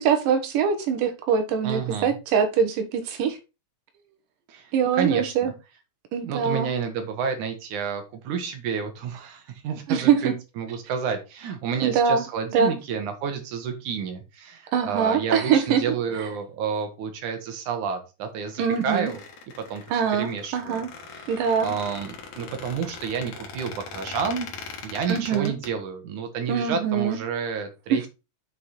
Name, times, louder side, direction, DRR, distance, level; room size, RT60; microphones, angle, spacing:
voice 1, 0.0-3.4 4.7-5.5 6.1-6.7 9.9-10.3 11.8-12.2 12.5-12.8 14.7-15.8 18.6-19.1 19.9-20.9 21.3-21.7 25.1-25.5 26.5-27.2 27.9-28.1, right 7 dB, 90° right, 6 dB, 2.8 m, -23 dB
voice 2, 1.6-2.2 4.5-4.7 5.0-5.5 6.2-19.2 19.6-20.8 21.6-24.5 24.8-28.1, right 6 dB, 70° right, 6 dB, 2.7 m, -30 dB
Squeak, 18.5-25.7, left 5 dB, 65° left, 2.7 m, -40 dB
7.5 x 5.0 x 4.2 m, 0.28 s
omnidirectional pair, 3.7 m